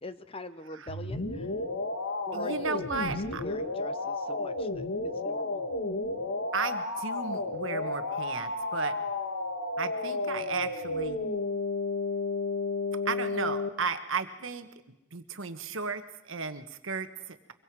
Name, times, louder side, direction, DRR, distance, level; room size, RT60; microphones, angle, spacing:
voice 1, 0.0-1.5 2.3-5.6, left 2 dB, 25° left, 12 dB, 0.7 m, -44 dB
sound 1, 0.9-13.7, left 3 dB, 70° left, 1.9 m, -32 dB
voice 2, 2.3-3.4 6.5-8.9 9.8-11.2 13.0-14.7 15.1-17.5, right 5 dB, 70° right, 8 dB, 1.4 m, -34 dB
24.5 x 23.0 x 4.9 m, 0.92 s
head